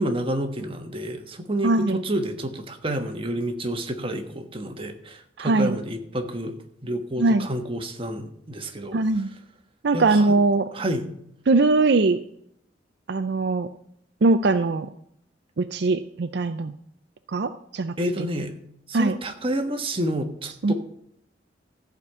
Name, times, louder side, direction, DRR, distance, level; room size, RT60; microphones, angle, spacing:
voice 1, 0.0-6.5 6.8-9.3 9.9-10.4 10.7-11.1 18.0-18.5 18.9-20.7, right 1 dB, 30° right, 5 dB, 1.3 m, -29 dB
voice 2, 1.6-2.0 5.4-5.8 7.2-7.5 8.9-9.3 9.8-10.7 11.5-12.2 13.1-13.7 14.2-14.9 15.6-16.7 17.3-17.9 18.9-19.1 20.6-20.7, right 3 dB, 65° right, 9 dB, 0.5 m, -21 dB
14.5 x 5.2 x 8.1 m, 0.72 s
head